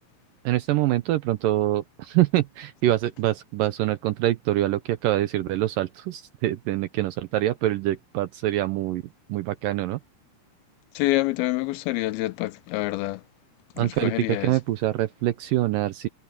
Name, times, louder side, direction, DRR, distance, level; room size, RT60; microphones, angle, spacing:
voice 1, 0.5-9.0 9.3-10.0 13.8-14.1 14.4-16.1, right 14 dB, 80° right, 2.1 m, -25 dB
voice 2, 11.0-13.2 13.8-14.6, left 18 dB, 80° left, 2.4 m, -27 dB
omnidirectional pair, 4.6 m